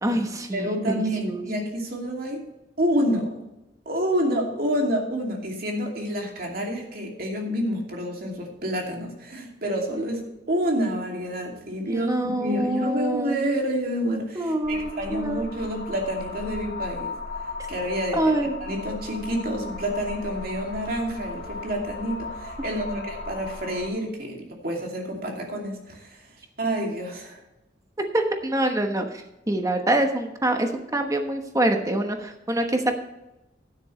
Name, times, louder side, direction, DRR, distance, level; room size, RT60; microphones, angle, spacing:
voice 1, 0.0-1.4 11.9-13.5 14.3-15.4 18.1-18.5 22.7-23.1 28.1-33.0, right 1 dB, 20° right, 5 dB, 1.1 m, -25 dB
voice 2, 0.5-2.4 2.8-3.4 3.9-17.1 17.7-18.3 18.6-26.2 26.6-27.4, equal, 55° right, 0 dB, 2.6 m, -28 dB
sound 1, 14.6-23.9, left 3 dB, 65° left, 1.9 m, -36 dB
12.0 x 10.0 x 3.2 m, 0.95 s
head